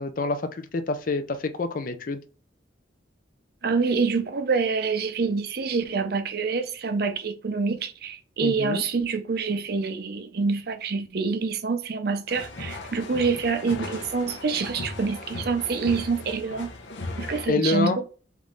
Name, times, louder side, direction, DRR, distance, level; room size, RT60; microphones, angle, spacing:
voice 1, 0.0-2.2 8.4-8.8 17.5-18.0, left 3 dB, 45° left, 0.4 m, -27 dB
voice 2, 3.6-16.7 17.2-18.1, right 4 dB, 55° right, 0.5 m, -26 dB
sound 1, 12.3-17.5, left 2 dB, 80° left, 0.8 m, -37 dB
3.5 x 3.1 x 3.8 m
head